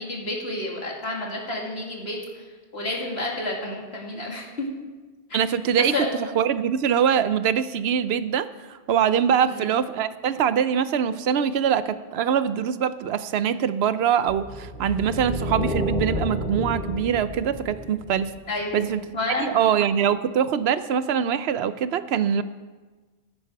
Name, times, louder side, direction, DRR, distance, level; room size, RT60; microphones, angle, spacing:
voice 1, 0.0-2.4 2.7-4.6 5.3-5.4 5.8-6.1 9.5-9.8 18.5-18.9 19.1-19.5, left 2 dB, 70° left, -1 dB, 2.6 m, -30 dB
voice 2, 5.3-5.9 6.4-18.3 18.7-19.0 19.4-22.4, right 8 dB, 75° right, 14 dB, 0.8 m, -23 dB
sound 1, 14.3-18.7, left 1 dB, 55° left, 2.2 m, -30 dB
15.0 x 9.7 x 4.7 m, 1.3 s
omnidirectional pair, 1.1 m